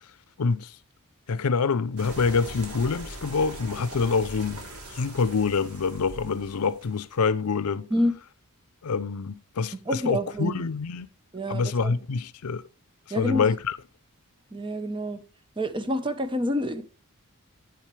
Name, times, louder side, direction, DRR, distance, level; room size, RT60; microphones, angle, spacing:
voice 1, 0.4-0.7 1.3-4.6 4.9-7.9 8.8-11.1 11.5-12.6 13.2-13.8, left 5 dB, 80° left, 0.5 m, -26 dB
sound 1, 2.0-7.4, right 1 dB, 80° right, 3.2 m, -41 dB
voice 2, 9.9-10.6 11.3-12.0 13.1-13.5 14.5-15.2 15.6-16.8, equal, 20° right, 0.9 m, -28 dB
10.5 x 7.3 x 3.2 m
head